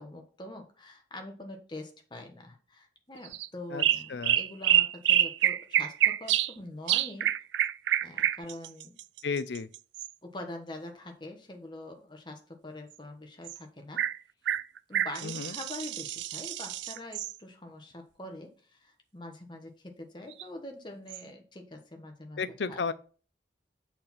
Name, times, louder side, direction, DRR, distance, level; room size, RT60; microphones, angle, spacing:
voice 1, 0.0-7.3 8.0-8.9 10.2-14.0 14.9-22.4 22.7-22.8, left 1 dB, 25° left, 1.3 m, -44 dB
sound 1, 3.2-3.5 3.8-6.5 6.9-10.1 13.4-13.6 14.0-14.2 14.5-17.3 20.3-20.4 21.1-21.2, right 11 dB, 85° right, 0.4 m, -27 dB
voice 2, 9.2-9.7 15.2-15.5 22.4-22.9, left 5 dB, 75° left, 0.6 m, -33 dB
6.6 x 4.4 x 5.8 m
head